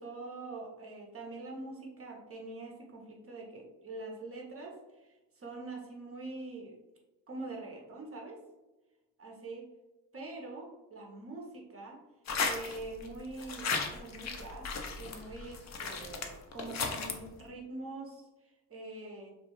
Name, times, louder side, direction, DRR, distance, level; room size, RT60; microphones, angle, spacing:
voice 1, 0.0-6.8 7.3-8.4 9.2-9.7 10.1-12.0 12.4-19.3, right 2 dB, 30° right, -1 dB, 0.6 m, -44 dB
sound 1, 12.3-13.1 13.4-17.1, left 4 dB, 40° left, 0.5 m, -35 dB
2.4 x 2.3 x 2.9 m, 1.1 s
supercardioid pair, 70°, 45 cm